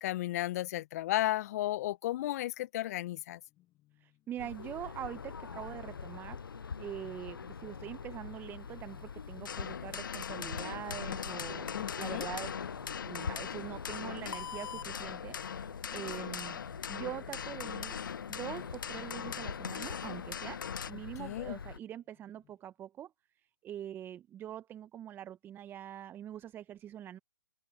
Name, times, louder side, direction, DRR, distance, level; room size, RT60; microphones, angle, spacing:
voice 1, 0.0-3.4 11.7-12.3 21.2-21.6, left 15 dB, 45° left, 0.6 m, -34 dB
sound 1, 3.5-22.6, left 16 dB, 25° left, 1.8 m, -62 dB
voice 2, 4.0-6.4 6.8-11.7 12.0-12.5 13.0-15.6 15.9-16.6 16.9-17.9 18.3-20.6 20.9-23.1 23.6-27.2, right 11 dB, 20° right, 1.0 m, -44 dB
sound 2, 4.4-21.8, left 5 dB, 85° left, 0.5 m, -44 dB
sound 3, 9.5-20.9, left 8 dB, 70° left, 1.1 m, -41 dB
open air
hypercardioid pair, 125°, 11 cm